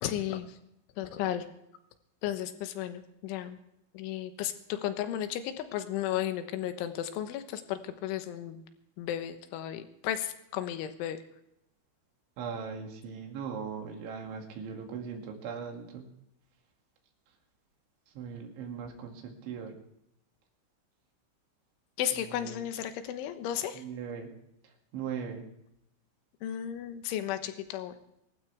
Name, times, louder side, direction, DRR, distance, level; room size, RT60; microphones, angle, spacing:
voice 1, 0.0-0.6 1.0-1.5 2.2-3.6 3.9-8.6 9.0-11.2 22.0-23.8 26.4-27.9, left 11 dB, 75° left, 9 dB, 3.4 m, -34 dB
voice 2, 12.4-16.1 18.1-19.7 22.1-22.6 23.7-24.3 24.6-25.5, right 6 dB, 70° right, 1 dB, 4.6 m, -39 dB
24.5 x 12.5 x 3.4 m, 0.81 s
omnidirectional pair, 5.8 m